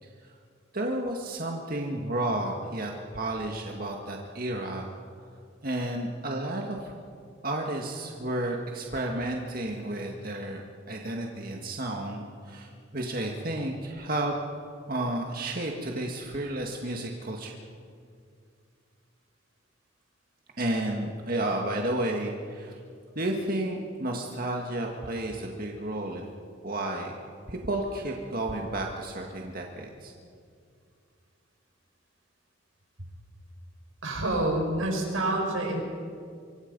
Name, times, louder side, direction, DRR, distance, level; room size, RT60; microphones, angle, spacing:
voice 1, 0.7-4.9 5.6-6.9 7.4-10.6 10.9-14.3 14.9-17.6 20.6-22.8 23.2-26.3 26.6-27.2 27.5-30.1, right 1 dB, 45° right, 1 dB, 1.9 m, -32 dB
voice 2, 34.0-35.8, right 1 dB, 85° right, 1 dB, 5.6 m, -27 dB
25.0 x 25.0 x 5.5 m, 2.2 s
head